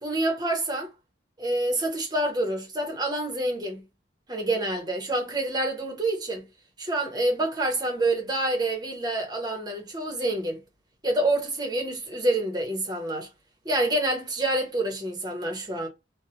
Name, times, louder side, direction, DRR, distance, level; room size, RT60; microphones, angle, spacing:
voice 1, 0.0-0.9 1.4-3.8 4.3-6.4 6.8-10.6 11.0-13.3 13.6-15.9, right 1 dB, 20° right, 0.7 m, -27 dB
2.7 x 2.0 x 2.7 m
head